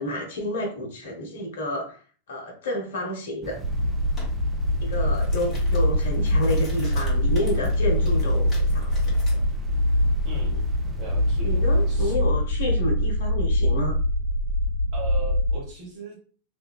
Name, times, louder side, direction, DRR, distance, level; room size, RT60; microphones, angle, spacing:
voice 1, 0.0-2.0 2.3-3.6 4.8-9.4 10.4-10.6 11.4-13.9, equal, 60° left, 1 dB, 0.7 m, -30 dB
sound 1, 3.4-12.2, right 4 dB, 15° right, 0.3 m, -40 dB
sound 2, 3.6-15.5, left 1 dB, 75° right, 1.2 m, -23 dB
sound 3, 4.2-4.3 4.8-9.4, left 2 dB, 25° left, 0.9 m, -46 dB
voice 2, 10.2-10.6 11.0-12.1 14.9-16.2, right 3 dB, 35° right, -4 dB, 0.9 m, -38 dB
2.6 x 2.2 x 2.3 m, 0.41 s
figure-of-eight pair, 90°, 0 cm